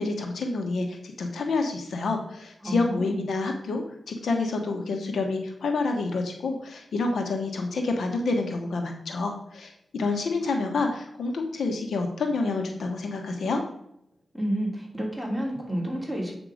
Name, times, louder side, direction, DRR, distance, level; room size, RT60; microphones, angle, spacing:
voice 1, 0.0-13.6, left 3 dB, 90° left, 3 dB, 1.3 m, -28 dB
voice 2, 2.6-3.2 14.3-16.3, right 1 dB, 5° left, -1 dB, 2.8 m, -30 dB
8.1 x 5.9 x 5.0 m, 0.76 s
wide cardioid pair, 100°, 0 cm